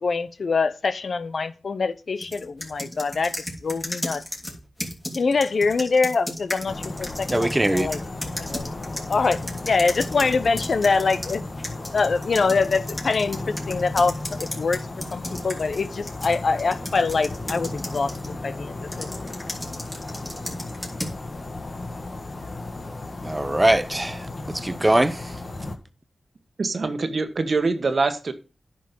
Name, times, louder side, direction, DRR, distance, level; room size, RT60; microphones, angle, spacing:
voice 1, 0.0-4.2 5.1-8.0 8.4-8.6 9.1-9.4 9.7-11.4 11.9-14.8 15.1-19.1, left 4 dB, 65° left, 0.7 m, -24 dB
sound 1, 2.2-11.4 11.6-18.3 18.9-21.2, left 1 dB, 20° left, 2.9 m, -35 dB
sound 2, 6.7-25.8, left 2 dB, 45° left, 1.6 m, -35 dB
voice 2, 7.3-7.9 23.2-25.3, right 1 dB, 20° right, 0.9 m, -22 dB
voice 3, 26.6-28.3, right 3 dB, 60° right, 1.3 m, -24 dB
10.0 x 5.5 x 5.2 m
cardioid pair, 55°, 0 cm